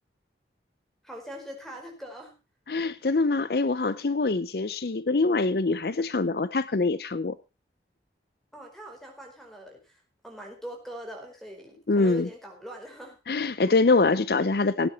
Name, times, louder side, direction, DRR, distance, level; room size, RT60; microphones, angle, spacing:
voice 1, 1.0-2.3 8.5-13.2, equal, ahead, 4.6 m, -42 dB
voice 2, 2.7-7.4 11.9-12.3 13.3-14.9, left 3 dB, 60° left, 0.6 m, -24 dB
17.5 x 9.6 x 4.2 m
head